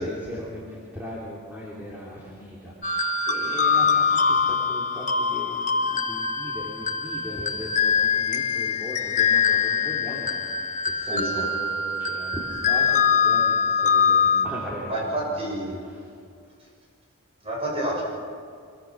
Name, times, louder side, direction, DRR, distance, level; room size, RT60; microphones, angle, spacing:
voice 1, 0.0-15.4 15.8-16.1, equal, 10° right, -6 dB, 3.1 m, -38 dB
sound 1, 2.8-14.5, left 6 dB, 35° left, 1.1 m, -23 dB
voice 2, 11.1-11.5 14.9-15.8 17.4-18.0, right 1 dB, 25° right, -2 dB, 6.4 m, -29 dB
24.0 x 22.0 x 6.3 m, 2.3 s
head